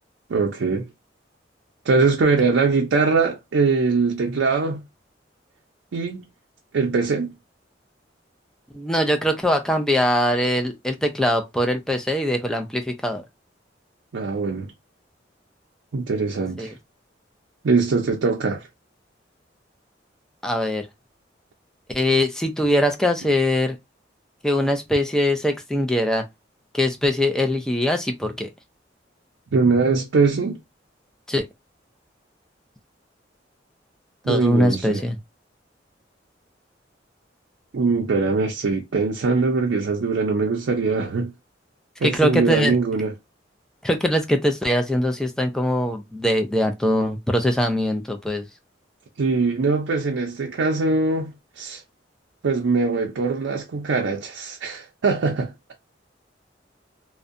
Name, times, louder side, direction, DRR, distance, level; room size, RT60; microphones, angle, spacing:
voice 1, 0.3-0.9 1.9-4.8 5.9-6.2 6.7-7.3 14.1-14.7 15.9-16.7 17.6-18.7 23.2-23.3 29.5-30.6 34.2-35.0 37.7-41.3 42.0-43.1 49.2-51.8 52.4-55.5, right 4 dB, 85° right, 0.5 m, -22 dB
voice 2, 8.7-13.2 16.6-16.7 20.4-20.9 21.9-23.8 24.4-26.2 26.7-28.5 31.3-31.5 34.3-35.2 42.0-42.8 43.8-48.4, left 1 dB, 5° left, 0.4 m, -22 dB
2.6 x 2.1 x 2.4 m
head